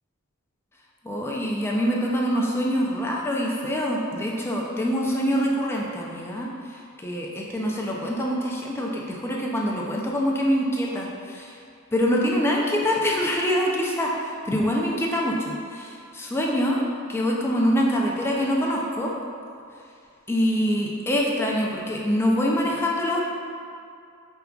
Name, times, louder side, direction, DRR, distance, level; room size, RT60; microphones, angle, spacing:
voice 1, 1.0-6.5 7.0-11.5 11.9-16.8 17.1-19.1 20.3-23.2, equal, 10° left, -2 dB, 0.4 m, -25 dB
5.2 x 3.4 x 2.3 m, 2.3 s
head